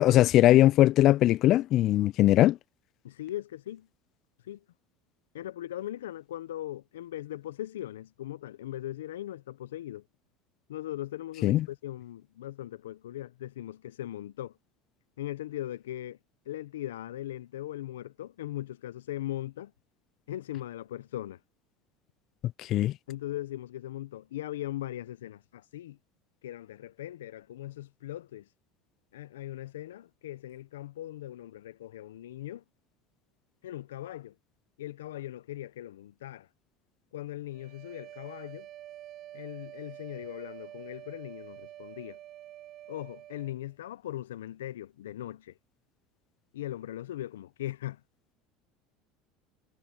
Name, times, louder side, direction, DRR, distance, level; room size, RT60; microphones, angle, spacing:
voice 1, 0.0-2.6 11.4-11.7 22.7-22.9, left 14 dB, 55° left, 0.4 m, -20 dB
voice 2, 3.0-3.9 4.5-4.6 5.3-10.0 10.7-14.5 15.2-16.2 16.5-19.7 20.3-21.4 23.1-26.0 26.4-28.5 29.1-32.6 33.6-34.3 34.8-36.5 37.1-38.7 39.3-42.2 42.9-45.5 46.5-48.0, left 13 dB, 85° left, 0.9 m, -39 dB
sound 1, 37.5-43.5, right 13 dB, 50° right, 5.0 m, -47 dB
hypercardioid pair, 80°, 0 cm